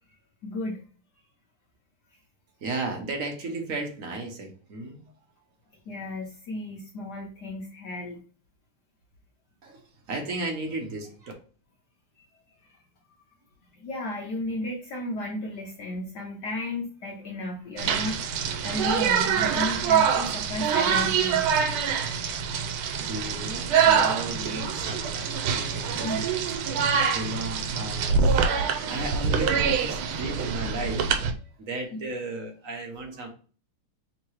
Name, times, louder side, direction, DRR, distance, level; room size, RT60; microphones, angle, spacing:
voice 1, 0.4-0.8 5.9-8.2 13.8-21.5 26.0-26.2 32.0-32.1, left 1 dB, 60° left, -1 dB, 1.3 m, -34 dB
voice 2, 2.6-5.0 9.6-9.8 10.1-11.3 22.3-22.5 23.0-26.8 27.1-28.4 28.9-33.3, right 2 dB, 50° right, 2 dB, 1.1 m, -35 dB
sound 1, 17.8-31.3, right 7 dB, 85° right, 1.5 m, -25 dB
3.8 x 2.9 x 4.6 m, 0.39 s
omnidirectional pair, 2.3 m